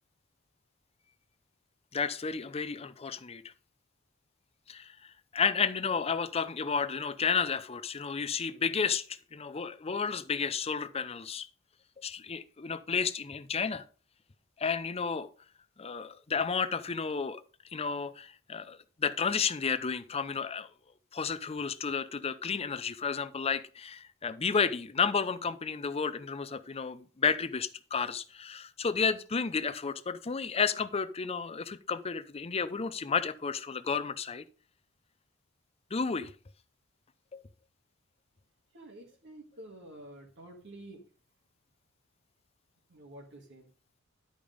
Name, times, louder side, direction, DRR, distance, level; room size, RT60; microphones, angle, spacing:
voice 1, 1.9-3.4 4.7-11.5 12.0-13.8 14.6-15.3 15.8-17.4 17.7-20.7 21.1-34.4 35.9-36.3 37.3-37.4, left 5 dB, 30° left, 0.5 m, -32 dB
voice 2, 38.7-41.0 42.9-43.7, right 1 dB, 55° right, 1.8 m, -49 dB
11.0 x 5.2 x 5.1 m
head